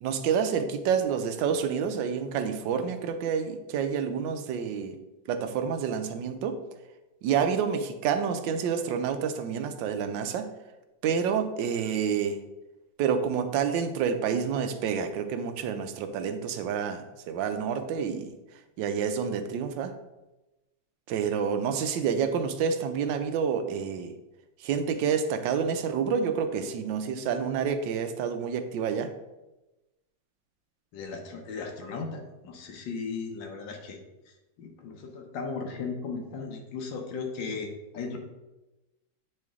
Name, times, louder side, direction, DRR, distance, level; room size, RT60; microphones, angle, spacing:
voice 1, 0.0-5.0 5.3-6.6 7.2-10.5 11.0-12.4 13.0-18.3 18.8-19.9 21.1-24.1 24.6-29.1, right 7 dB, 80° right, 8 dB, 1.3 m, -28 dB
voice 2, 30.9-34.0 34.6-38.2, left 4 dB, 80° left, 2 dB, 1.6 m, -36 dB
8.4 x 3.2 x 3.5 m, 1.0 s
omnidirectional pair, 2.0 m